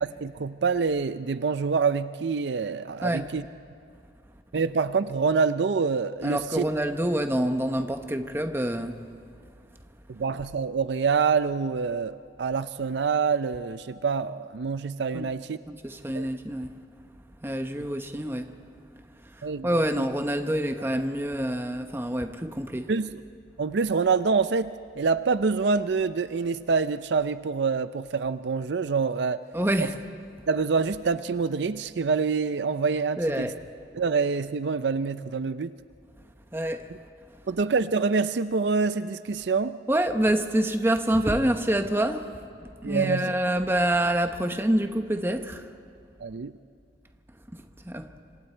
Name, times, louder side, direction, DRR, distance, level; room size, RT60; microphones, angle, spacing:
voice 1, 0.0-3.4 4.5-6.6 10.1-15.6 16.1-16.3 19.4-19.7 20.0-20.1 22.9-23.2 23.6-29.4 30.5-33.5 33.9-35.7 37.5-39.8 42.8-43.3 46.2-46.5, right 5 dB, 65° right, 0.5 m, -26 dB
voice 2, 6.2-9.0 15.1-15.3 15.7-16.8 17.4-18.6 19.3-22.9 29.5-30.0 33.2-33.6 36.5-36.9 39.9-42.3 42.6-45.7 47.5-48.1, right 1 dB, 15° right, 1.0 m, -27 dB
27.0 x 26.0 x 4.4 m
head